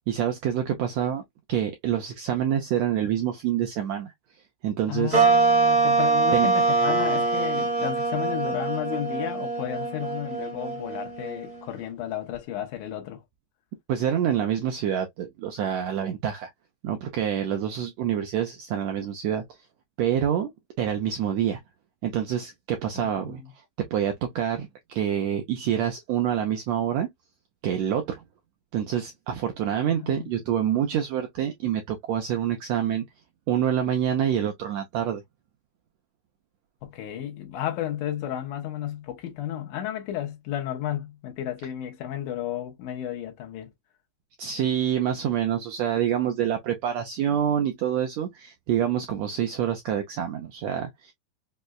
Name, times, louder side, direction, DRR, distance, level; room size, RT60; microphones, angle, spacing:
voice 1, 0.1-1.2 1.5-4.1 4.6-5.3 6.3-6.5 13.9-16.5 16.8-19.4 20.0-20.5 20.8-21.6 22.0-23.4 23.9-27.1 27.6-28.2 28.7-33.0 33.5-35.2 44.4-51.1, right 9 dB, 80° right, 1.5 m, -26 dB
voice 2, 4.9-13.2 23.0-23.5 29.9-30.3 36.8-43.7, left 11 dB, 80° left, 2.2 m, -33 dB
sound 1, 5.1-11.8, right 4 dB, 45° right, 0.5 m, -24 dB
5.4 x 2.1 x 2.3 m
omnidirectional pair, 3.7 m